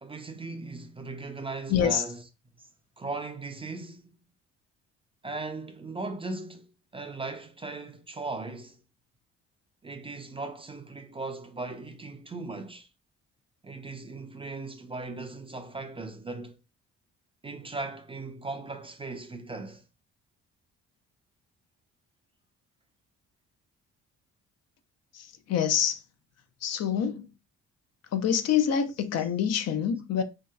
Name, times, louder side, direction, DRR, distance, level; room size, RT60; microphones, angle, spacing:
voice 1, 0.0-2.2 2.6-2.7 3.0-4.2 5.2-8.8 9.8-12.9 13.6-16.6 17.4-19.8, right 3 dB, 20° right, 0.4 m, -38 dB
voice 2, 1.7-2.0 25.1-26.0 26.6-27.3 28.1-30.2, left 8 dB, 60° left, 0.5 m, -26 dB
3.0 x 2.7 x 2.2 m
cardioid pair, 90°, 30 cm